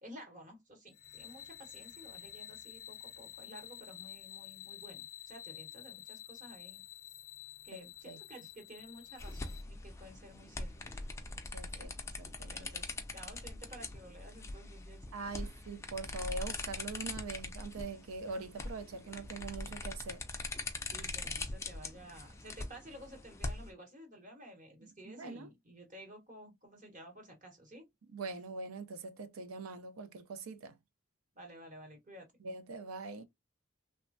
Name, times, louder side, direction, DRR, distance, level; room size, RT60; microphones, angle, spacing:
voice 1, 0.0-6.8 7.6-11.0 11.7-11.9 12.4-15.1 15.4-15.5 20.9-27.9 31.3-32.3, equal, 40° right, 1.1 m, -53 dB
sound 1, 0.9-9.6, left 11 dB, 80° left, 0.5 m, -50 dB
voice 2, 7.7-8.2 11.5-11.9 12.2-12.7 15.1-20.2 24.8-25.5 28.1-30.8 32.4-33.2, right 3 dB, 80° right, 0.5 m, -43 dB
sound 2, 9.2-23.7, left 3 dB, 15° left, 0.4 m, -42 dB
3.2 x 2.1 x 2.6 m
head